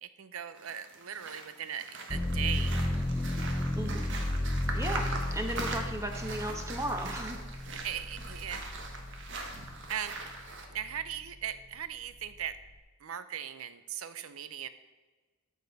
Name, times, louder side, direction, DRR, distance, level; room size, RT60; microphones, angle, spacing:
voice 1, 0.0-2.8 7.6-8.7 9.9-10.2 10.7-12.6 13.0-14.7, right 9 dB, 75° right, 12 dB, 0.6 m, -38 dB
sound 1, 0.6-10.7, right 3 dB, 60° right, 1.3 m, -42 dB
sound 2, 2.1-9.9 10.4-11.2, left 1 dB, 15° left, 0.6 m, -34 dB
voice 2, 4.7-5.1 5.3-7.4, right 1 dB, 15° right, 4 dB, 1.0 m, -35 dB
13.5 x 6.2 x 4.1 m, 1.3 s
head